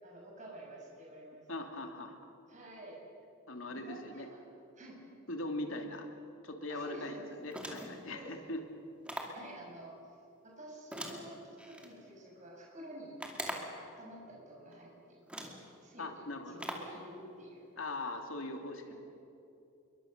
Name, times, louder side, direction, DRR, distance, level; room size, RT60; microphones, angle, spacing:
voice 1, 0.0-1.6 2.5-3.0 3.7-4.4 4.8-5.0 5.7-5.8 6.7-7.3 8.1-8.5 9.3-10.0 10.4-13.1 13.5-15.5 15.8-16.2 16.5-17.7 18.9-19.0, right 1 dB, 35° right, -2 dB, 6.6 m, -50 dB
voice 2, 1.5-2.2 3.5-4.3 5.3-6.1 6.4-8.6 16.0-16.7 17.8-18.9, left 2 dB, 75° left, 4 dB, 2.7 m, -40 dB
sound 1, 7.5-8.1 9.1-9.5 10.9-11.9 13.2-13.8 14.7-14.8 15.3-15.7 16.6-17.0, right 1 dB, 5° right, 2.4 m, -42 dB
27.5 x 23.0 x 6.7 m, 2.8 s
head